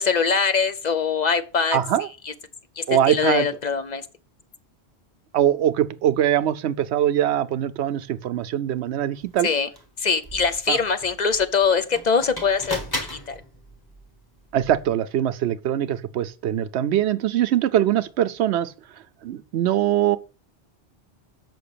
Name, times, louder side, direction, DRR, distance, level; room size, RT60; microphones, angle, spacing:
voice 1, 0.0-1.8 2.3-2.4 2.8-4.0 9.4-9.7 10.0-13.4, left 5 dB, 45° left, 0.7 m, -23 dB
voice 2, 1.7-2.1 2.9-3.5 5.3-9.5 10.7-10.8 14.5-18.7 19.2-20.2, right 11 dB, 80° right, 0.9 m, -22 dB
sound 1, 9.2-9.3 9.7-14.9, left 1 dB, 20° left, 1.4 m, -37 dB
6.4 x 6.1 x 6.7 m
omnidirectional pair, 1.1 m